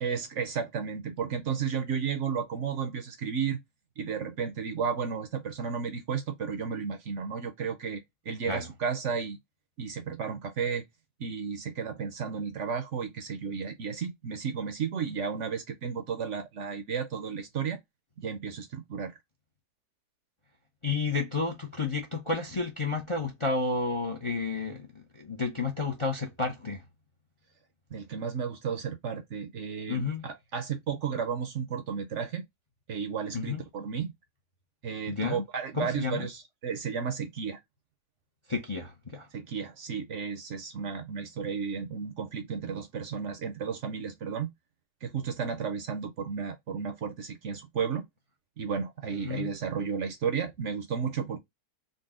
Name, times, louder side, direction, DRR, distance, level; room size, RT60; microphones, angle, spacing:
voice 1, 0.0-3.6 4.0-9.4 9.8-10.9 11.2-17.8 18.2-19.2 27.9-32.4 32.9-34.1 34.8-37.6 39.3-44.5 45.0-48.0 48.6-51.4, right 6 dB, 60° right, 0.9 m, -33 dB
voice 2, 20.8-26.8 29.9-30.3 33.3-33.6 35.1-35.4 35.7-36.3 38.5-39.3 49.2-49.5, left 4 dB, 30° left, 0.6 m, -31 dB
4.0 x 2.2 x 3.6 m
omnidirectional pair, 1.6 m